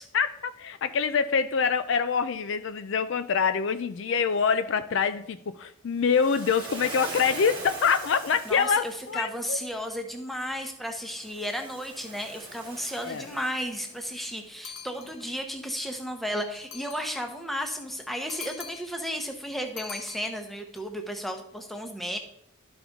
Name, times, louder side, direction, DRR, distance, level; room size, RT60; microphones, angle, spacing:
voice 1, 0.1-9.6 13.0-13.3, left 6 dB, 55° left, 11 dB, 0.4 m, -25 dB
Waves surf, 6.1-9.3 11.1-14.1, right 3 dB, 20° right, 1.5 m, -41 dB
voice 2, 8.4-22.2, equal, ahead, 4 dB, 0.8 m, -34 dB
sound 1, 14.6-15.4 16.5-17.3 18.3-19.1 19.8-20.8, left 6 dB, 75° left, 1.0 m, -43 dB
12.0 x 5.3 x 3.6 m, 0.74 s
head